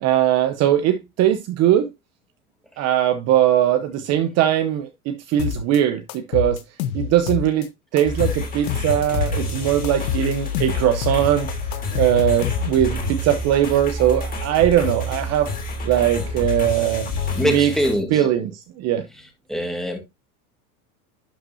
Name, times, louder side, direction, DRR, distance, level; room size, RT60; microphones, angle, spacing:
voice 1, 0.0-1.9 2.8-6.6 6.9-11.5 11.9-15.5 15.8-17.1 17.4-17.7 18.1-19.0, right 11 dB, 35° right, 0.8 m, -20 dB
sound 1, 5.4-5.8 6.1-7.7 8.0-9.5 9.8-12.9, left 8 dB, 75° left, 1.3 m, -27 dB
sound 2, 8.1-18.0, left 3 dB, 20° left, 2.8 m, -28 dB
voice 2, 17.4-18.3 19.5-20.0, equal, ahead, 1.9 m, -23 dB
11.0 x 5.5 x 2.8 m
supercardioid pair, 140°, 43 cm